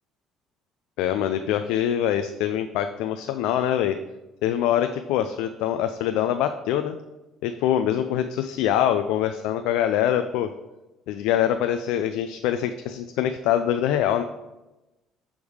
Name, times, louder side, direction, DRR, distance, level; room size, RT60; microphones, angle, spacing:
voice 1, 1.0-4.0 4.4-7.0 7.4-10.5 11.1-14.2, left 10 dB, 85° left, 8 dB, 0.3 m, -24 dB
6.3 x 3.5 x 4.8 m, 1.0 s
supercardioid pair, 90°, 0 cm